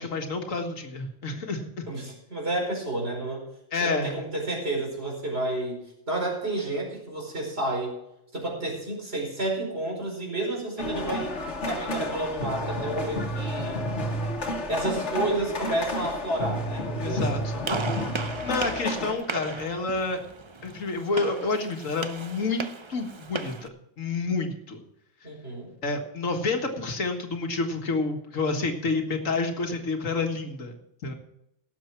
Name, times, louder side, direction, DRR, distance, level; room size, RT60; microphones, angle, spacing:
voice 1, 0.0-1.9 3.7-4.2 17.0-17.7 18.4-20.2 20.6-23.7 24.0-24.8 25.8-30.8 31.0-31.2, left 3 dB, 85° left, 4 dB, 2.0 m, -29 dB
voice 2, 1.9-3.4 3.8-7.9 8.3-11.4 11.7-13.8 14.7-17.5 25.2-25.7, right 1 dB, 50° right, -1 dB, 5.1 m, -30 dB
sound 1, 10.8-19.1, left 1 dB, 65° left, 2.0 m, -31 dB
Gunshot gunfire, 17.6-23.7, right 4 dB, 30° right, 0.6 m, -36 dB
18.0 x 7.6 x 4.5 m, 0.81 s
omnidirectional pair, 1.3 m